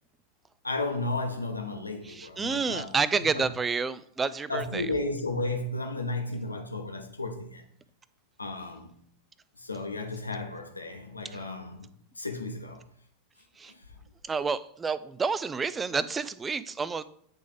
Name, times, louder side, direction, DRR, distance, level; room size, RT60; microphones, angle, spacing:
voice 1, 0.6-3.4 4.5-7.6 8.4-8.9 9.6-11.9 12.2-12.8, left 2 dB, 80° left, 0.9 m, -33 dB
voice 2, 2.1-4.9 11.3-11.4 13.6-13.7 14.2-17.0, right 5 dB, 15° right, 0.3 m, -29 dB
8.8 x 3.5 x 3.8 m
figure-of-eight pair, 90°, 0 cm